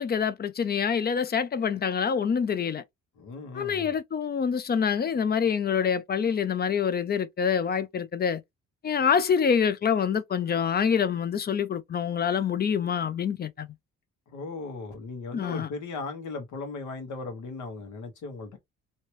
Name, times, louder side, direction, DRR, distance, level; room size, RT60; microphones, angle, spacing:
voice 1, 0.0-2.8 3.5-8.4 8.8-13.7 15.3-15.7, left 7 dB, 35° left, 0.4 m, -26 dB
voice 2, 3.2-4.0 14.3-18.6, left 3 dB, 75° left, 1.4 m, -37 dB
2.9 x 2.9 x 3.1 m
cardioid pair, 90°, 30 cm